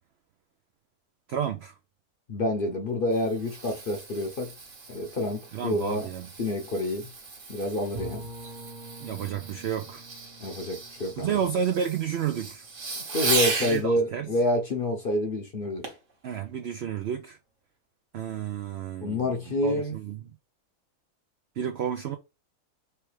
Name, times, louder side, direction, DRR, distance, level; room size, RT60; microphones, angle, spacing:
voice 1, 1.3-1.8 5.5-6.3 9.0-10.0 11.2-12.7 13.6-14.4 16.2-17.4 18.1-19.4 19.6-20.2 21.6-22.2, right 8 dB, 75° right, 0.5 m, -31 dB
voice 2, 2.3-4.5 4.9-6.1 6.4-7.1 7.5-8.3 10.4-11.4 13.1-15.8 19.0-20.0, left 1 dB, 50° left, 0.7 m, -28 dB
Fireworks, 2.8-13.8 15.8-16.1 16.7-16.8, right 4 dB, 55° right, 1.4 m, -36 dB
Bowed string instrument, 8.0-12.8, right 1 dB, 40° right, 0.9 m, -45 dB
3.3 x 3.1 x 4.7 m
omnidirectional pair, 1.6 m